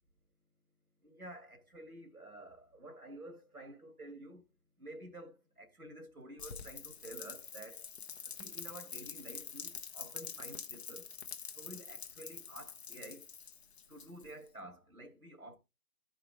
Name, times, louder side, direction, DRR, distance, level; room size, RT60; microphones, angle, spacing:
voice 1, 1.0-4.4 4.8-7.8 8.4-11.0 11.6-13.3 13.9-15.6, right 1 dB, 85° right, 2.2 m, -50 dB
Rain, 6.4-14.5, left 6 dB, 45° left, 1.1 m, -46 dB
14.0 x 5.0 x 3.3 m
figure-of-eight pair, 135°, 43 cm